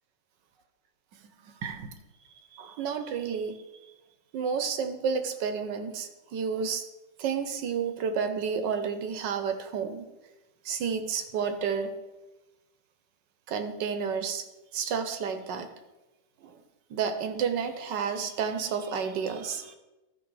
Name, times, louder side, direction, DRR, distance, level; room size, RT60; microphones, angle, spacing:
voice 1, 2.5-3.6 4.3-6.8 7.2-10.0 10.6-11.9 13.5-14.4 14.7-15.7 16.4-16.5 16.9-19.8, right 6 dB, 65° right, 8 dB, 1.3 m, -31 dB
13.5 x 4.8 x 4.7 m, 1.1 s
omnidirectional pair, 2.2 m